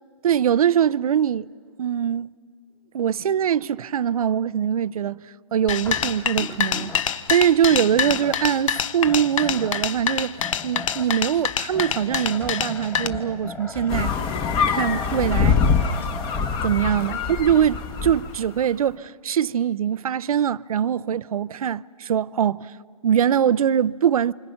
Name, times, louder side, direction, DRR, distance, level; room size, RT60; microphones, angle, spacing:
voice 1, 0.2-1.5 1.8-2.3 2.9-5.2 5.5-14.1 14.7-15.6 16.6-22.7 23.0-24.3, right 9 dB, 75° right, 0.6 m, -22 dB
sound 1, 5.7-13.1, left 9 dB, 60° left, 0.9 m, -26 dB
sound 2, 5.8-16.5, left 3 dB, 10° left, 1.4 m, -38 dB
sound 3, 13.9-18.4, left 5 dB, 25° left, 1.4 m, -23 dB
29.0 x 26.5 x 5.7 m
hypercardioid pair, 135°, 19 cm